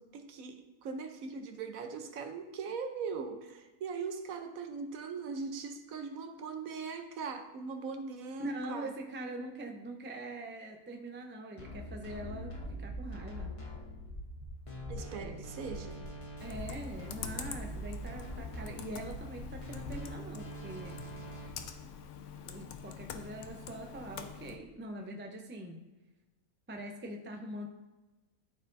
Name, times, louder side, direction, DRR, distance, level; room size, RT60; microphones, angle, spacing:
voice 1, 0.0-8.9 14.9-16.0, right 5 dB, 70° right, 6 dB, 1.1 m, -40 dB
voice 2, 8.4-13.5 15.2-15.4 16.4-20.9 21.2-21.5 22.4-25.8 26.7-27.7, right 1 dB, 15° right, 2 dB, 0.4 m, -43 dB
sound 1, 11.6-21.5, equal, 25° left, 0.9 m, -44 dB
sound 2, 12.0-20.0, equal, 40° right, 2.1 m, -48 dB
Computer keyboard, 16.4-24.6, left 7 dB, 65° left, 0.8 m, -46 dB
12.5 x 4.5 x 2.6 m, 1.1 s
omnidirectional pair, 1.6 m